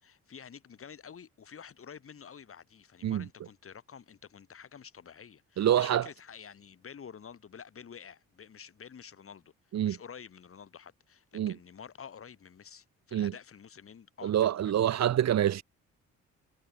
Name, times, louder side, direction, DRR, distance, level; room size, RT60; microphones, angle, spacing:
voice 1, 0.0-9.5 9.8-15.1, left 7 dB, 45° left, 4.0 m, -49 dB
voice 2, 5.6-6.0 9.7-10.0 11.3-11.5 13.1-13.3 14.2-15.6, right 11 dB, 60° right, 1.3 m, -26 dB
cardioid pair, 90°, 30 cm